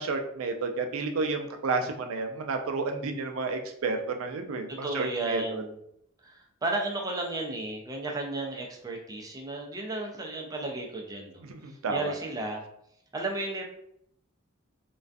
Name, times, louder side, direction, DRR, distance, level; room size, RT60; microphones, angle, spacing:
voice 1, 0.0-5.6 11.5-12.2, right 3 dB, 85° right, 5 dB, 0.4 m, -31 dB
voice 2, 4.8-5.8 6.2-12.6 13.1-13.6, right 2 dB, 20° right, 0 dB, 0.4 m, -33 dB
2.3 x 2.2 x 2.5 m, 0.73 s
head